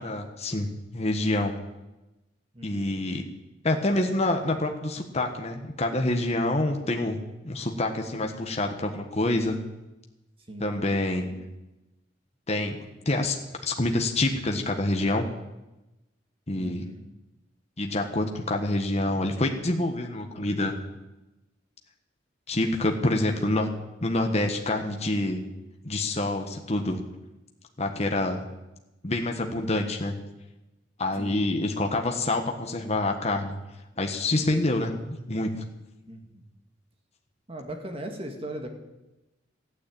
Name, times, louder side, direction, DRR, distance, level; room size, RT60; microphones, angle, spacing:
voice 1, 0.0-1.6 2.6-3.2 3.6-7.2 7.4-9.6 10.6-11.4 12.5-12.8 13.0-13.4 13.6-15.2 16.5-16.8 17.8-20.8 22.5-23.7 24.0-25.4 25.8-27.0 27.8-28.4 29.0-30.1 31.0-33.5 34.0-35.5, left 2 dB, 35° left, 3 dB, 1.4 m, -27 dB
voice 2, 2.5-2.9 10.5-10.7 16.5-17.1 31.1-31.6 36.1-36.4 37.5-38.7, right 1 dB, 30° right, 4 dB, 2.1 m, -39 dB
14.5 x 9.7 x 8.7 m, 1.0 s
head